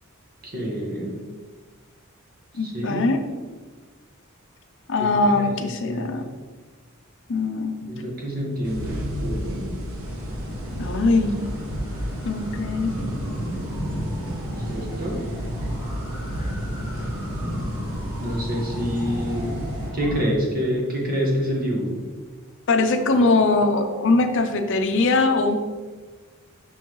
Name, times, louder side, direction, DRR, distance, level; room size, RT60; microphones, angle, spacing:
voice 1, 0.4-1.2 2.6-3.1 5.0-5.4 5.8-6.2 7.9-9.7 14.7-15.2 18.2-19.6 19.9-22.0, equal, 40° right, -2 dB, 1.4 m, -27 dB
voice 2, 2.5-3.2 4.9-6.3 7.3-7.9 10.7-11.5 12.2-12.9 22.7-25.6, left 3 dB, 60° left, 7 dB, 0.5 m, -21 dB
sound 1, 8.6-19.9, equal, 65° right, 1.2 m, -33 dB
sound 2, 9.9-20.3, equal, 25° right, 1.7 m, -33 dB
6.3 x 5.9 x 3.1 m, 1.4 s
head